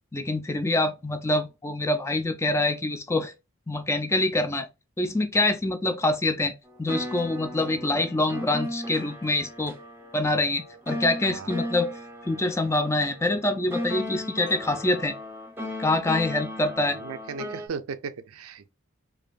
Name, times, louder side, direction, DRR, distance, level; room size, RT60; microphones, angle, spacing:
voice 1, 0.1-3.3 3.7-4.7 5.0-6.5 6.8-9.7 10.1-11.9 12.2-15.1 15.8-17.0, left 2 dB, 10° left, 0.3 m, -25 dB
sound 1, 6.7-17.7, left 1 dB, 10° right, 0.7 m, -36 dB
voice 2, 11.2-11.7 16.9-18.7, right 5 dB, 80° right, 0.5 m, -37 dB
4.8 x 2.5 x 2.4 m
head